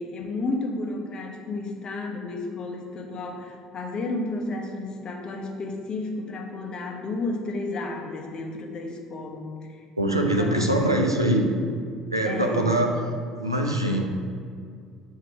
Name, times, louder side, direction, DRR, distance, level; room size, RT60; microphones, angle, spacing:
voice 1, 0.0-11.0 12.2-12.8, left 2 dB, 35° left, 2 dB, 0.9 m, -32 dB
voice 2, 10.0-11.5 12.1-12.9 13.4-14.1, right 1 dB, 90° right, 2 dB, 0.5 m, -23 dB
7.5 x 2.8 x 4.8 m, 2.2 s
figure-of-eight pair, 60°, 2 cm